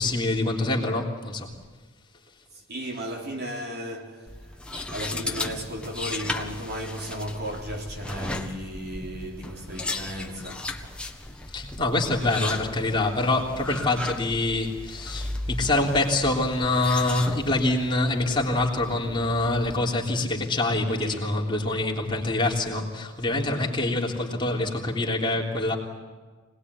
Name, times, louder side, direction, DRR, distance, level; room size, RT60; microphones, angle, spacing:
voice 1, 0.0-1.5 11.5-25.8, left 2 dB, 25° left, 3.5 m, -25 dB
voice 2, 2.7-11.0 20.9-21.4, equal, 50° right, 3.9 m, -35 dB
sound 1, 4.3-19.8, left 2 dB, 5° left, 1.6 m, -36 dB
25.5 x 19.5 x 9.8 m
head